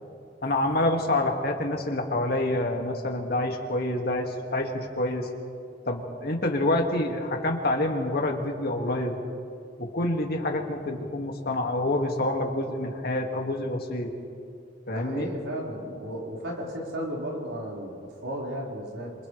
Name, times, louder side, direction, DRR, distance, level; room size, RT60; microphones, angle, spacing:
voice 1, 0.4-5.3 5.9-9.2 9.8-14.1 14.9-15.3, left 1 dB, 55° left, 1 dB, 2.3 m, -27 dB
voice 2, 14.9-18.0 18.2-19.1, equal, 85° right, -4 dB, 5.2 m, -34 dB
29.0 x 26.5 x 3.4 m, 2.5 s
head